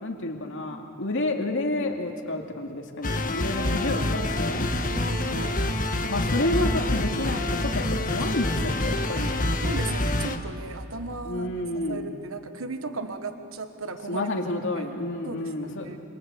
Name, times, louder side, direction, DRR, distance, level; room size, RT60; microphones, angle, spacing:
voice 1, 0.0-4.7 6.1-9.5 11.2-12.1 14.1-15.9, left 2 dB, 65° left, 2 dB, 2.3 m, -30 dB
sound 1, 3.0-10.4, left 1 dB, 40° left, 1.6 m, -26 dB
voice 2, 3.4-4.4 4.8-5.8 8.5-8.8 9.6-11.5 11.9-14.3 14.8-14.9 15.2-16.0, right 3 dB, 70° right, 8 dB, 1.4 m, -37 dB
27.5 x 26.5 x 8.2 m, 2.5 s
head